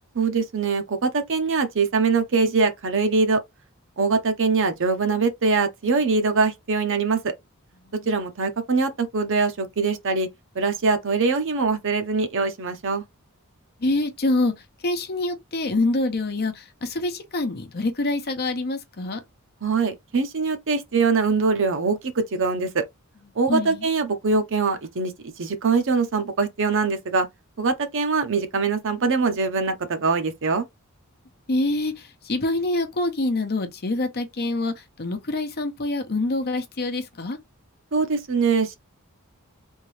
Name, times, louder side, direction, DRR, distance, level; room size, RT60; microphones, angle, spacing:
voice 1, 0.1-3.4 4.0-7.3 8.1-10.3 10.6-13.0 19.6-22.8 23.4-25.1 25.4-27.3 27.6-30.6 37.9-38.8, right 4 dB, 60° right, 0.8 m, -23 dB
voice 2, 13.8-14.5 14.8-19.2 23.5-23.9 31.5-34.7 35.0-37.4, left 2 dB, 45° left, 0.9 m, -25 dB
3.6 x 2.7 x 3.2 m
head